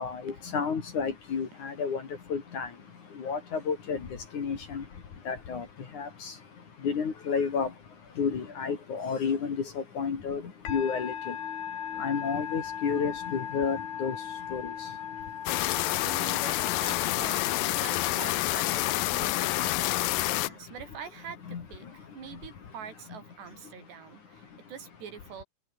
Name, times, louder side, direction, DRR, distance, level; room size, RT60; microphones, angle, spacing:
voice 1, 0.0-2.0 2.3-2.7 3.2-4.0 4.3-4.8 5.3-5.7 5.9-6.3 6.8-7.7 8.2-10.4 10.7-11.3 12.0-14.2 14.5-14.6 21.5-21.6, left 6 dB, 50° left, 4.0 m, -31 dB
Musical instrument, 10.6-18.3, left 8 dB, 65° left, 4.8 m, -38 dB
sound 1, 15.5-20.5, left 18 dB, 85° left, 2.0 m, -28 dB
voice 2, 15.6-21.4 21.7-25.4, right 7 dB, 90° right, 5.9 m, -45 dB
open air
omnidirectional pair, 4.7 m